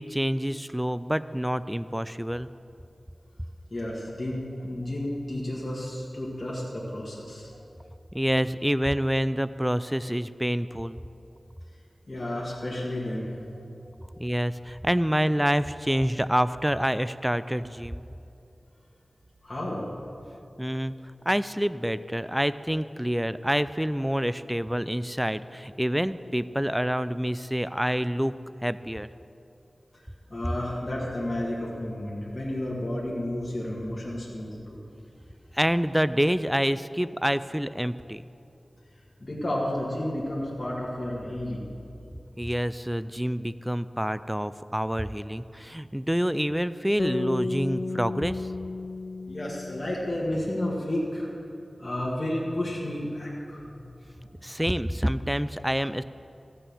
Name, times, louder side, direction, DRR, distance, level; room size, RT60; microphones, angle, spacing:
voice 1, 0.0-2.5 8.1-11.0 14.2-18.0 20.6-20.9 21.3-28.3 28.6-29.1 35.5-38.2 42.4-48.5 54.4-56.0, equal, 5° right, 14 dB, 0.3 m, -27 dB
voice 2, 3.7-7.5 12.1-13.3 19.4-19.9 30.3-34.8 39.2-41.7 49.2-51.3 51.8-53.8 54.0-54.2, left 1 dB, 35° left, -6 dB, 1.9 m, -31 dB
sound 1, 47.0-51.2, left 3 dB, 70° left, 0.4 m, -34 dB
14.5 x 5.6 x 7.1 m, 2.7 s
wide cardioid pair, 75°, 0 cm